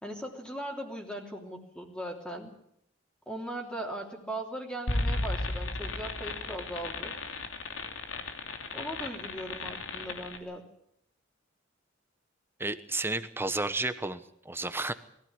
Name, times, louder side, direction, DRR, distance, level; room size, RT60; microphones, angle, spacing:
voice 1, 0.0-2.5 3.3-7.1 8.7-10.7, right 1 dB, 5° left, 0 dB, 3.1 m, -39 dB
sound 1, 4.9-10.4, left 2 dB, 90° left, 2.9 m, -34 dB
voice 2, 12.6-14.9, right 2 dB, 10° right, 11 dB, 1.1 m, -32 dB
22.0 x 15.5 x 9.6 m, 0.74 s
head